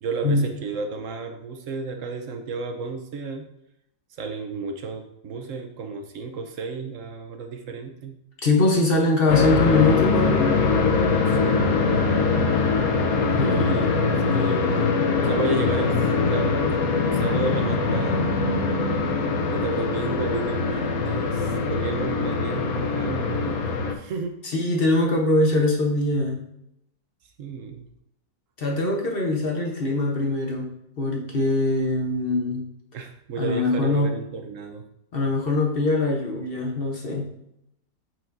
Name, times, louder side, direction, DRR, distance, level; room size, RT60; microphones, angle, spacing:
voice 1, 0.0-3.4 4.2-8.1 11.3-11.7 13.5-16.0 16.3-18.2 19.5-24.4 27.4-27.9 32.9-34.8, right 4 dB, 65° right, 5 dB, 0.9 m, -32 dB
voice 2, 8.4-10.6 13.4-13.7 24.4-26.4 28.6-30.7 31.0-32.6 33.4-34.1 35.1-37.3, left 2 dB, 40° left, 0 dB, 0.9 m, -22 dB
sound 1, 9.3-23.9, left 4 dB, 65° left, 1.1 m, -22 dB
8.3 x 4.5 x 2.6 m, 0.80 s
omnidirectional pair, 1.8 m